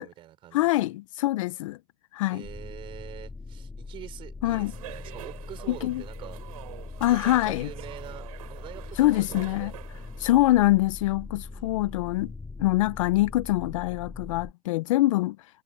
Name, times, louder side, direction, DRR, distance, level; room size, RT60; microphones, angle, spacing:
voice 1, 0.0-0.7 2.3-6.4 7.1-9.8 11.5-12.0, right 13 dB, 25° right, 5.1 m, -45 dB
voice 2, 0.5-1.8 2.1-2.5 4.4-4.7 5.7-6.0 7.0-7.7 9.0-9.7 10.2-12.3 12.6-15.4, left 17 dB, 55° left, 0.5 m, -24 dB
sound 1, 2.4-14.5, left 3 dB, 5° left, 1.7 m, -41 dB
sound 2, 4.5-10.3, right 16 dB, 65° right, 4.6 m, -45 dB
supercardioid pair, 165°, 20 cm